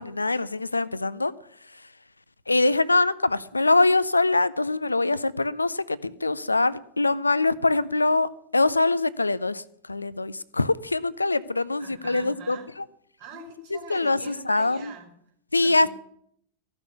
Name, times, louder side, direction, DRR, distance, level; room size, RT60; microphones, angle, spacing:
voice 1, 0.0-1.3 1.6-1.9 2.5-12.8 13.7-14.9 15.5-15.9, left 2 dB, 80° left, 18 dB, 0.4 m, -24 dB
voice 2, 11.8-12.7 13.2-15.1 15.5-15.9, right 3 dB, 50° right, 2 dB, 3.6 m, -44 dB
14.5 x 6.2 x 8.0 m, 0.69 s
figure-of-eight pair, 90°, 0 cm